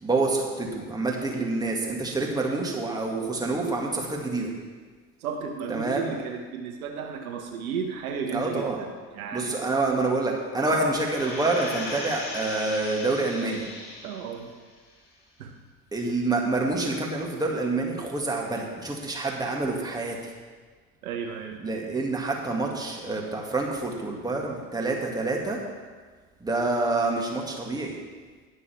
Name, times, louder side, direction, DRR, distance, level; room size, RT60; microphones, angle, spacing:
voice 1, 0.0-4.5 5.7-6.1 8.3-8.8 9.3-13.6 15.9-20.2 21.6-25.6 26.4-28.0, right 3 dB, 10° right, -1 dB, 2.3 m, -27 dB
voice 2, 5.2-9.7 10.6-10.9 14.0-14.5 15.4-15.5 21.0-21.6, right 6 dB, 65° right, 3 dB, 1.2 m, -34 dB
sound 1, 11.0-14.4 14.9-15.0, left 2 dB, 55° left, 4.0 m, -37 dB
20.0 x 6.9 x 3.5 m, 1.5 s
figure-of-eight pair, 65°, 45 cm